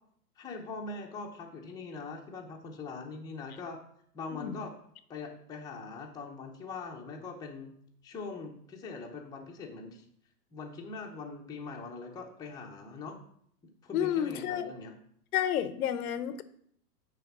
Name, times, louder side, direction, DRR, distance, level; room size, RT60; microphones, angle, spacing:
voice 1, 0.4-3.8 4.1-4.7 5.1-7.7 8.0-10.0 10.5-13.2 13.8-14.9, left 4 dB, 10° left, -1 dB, 0.7 m, -42 dB
voice 2, 13.9-14.7 15.3-16.4, left 10 dB, 65° left, 12 dB, 0.8 m, -30 dB
8.8 x 3.5 x 5.9 m, 0.66 s
hypercardioid pair, 140°, 48 cm